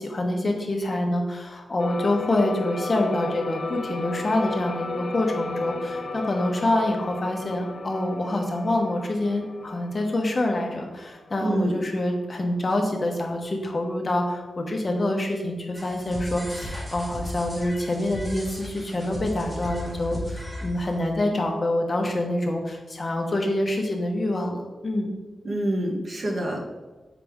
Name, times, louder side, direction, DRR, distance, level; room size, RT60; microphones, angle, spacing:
voice 1, 0.0-25.1, left 1 dB, 30° left, 2 dB, 1.0 m, -26 dB
sound 1, 1.8-11.7, left 2 dB, 55° left, 0.8 m, -34 dB
voice 2, 11.4-11.8 25.4-26.7, right 1 dB, 40° right, 0 dB, 1.2 m, -26 dB
sound 2, 15.7-21.1, equal, 20° right, 1.8 m, -36 dB
8.4 x 5.0 x 3.6 m, 1.2 s
wide cardioid pair, 155°, 0 cm